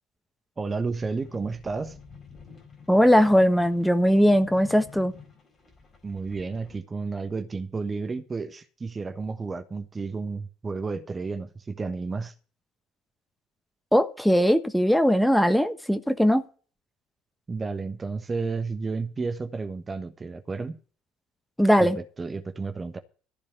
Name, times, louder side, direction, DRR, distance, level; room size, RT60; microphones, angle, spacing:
voice 1, 0.6-2.0 6.0-12.3 17.5-20.8 21.8-23.0, right 4 dB, 25° right, 1.2 m, -32 dB
sound 1, 1.0-6.8, left 5 dB, 30° left, 4.0 m, -49 dB
voice 2, 2.9-5.1 13.9-16.4 21.6-22.0, equal, ahead, 1.3 m, -20 dB
14.5 x 5.1 x 8.9 m
figure-of-eight pair, 60°, 0 cm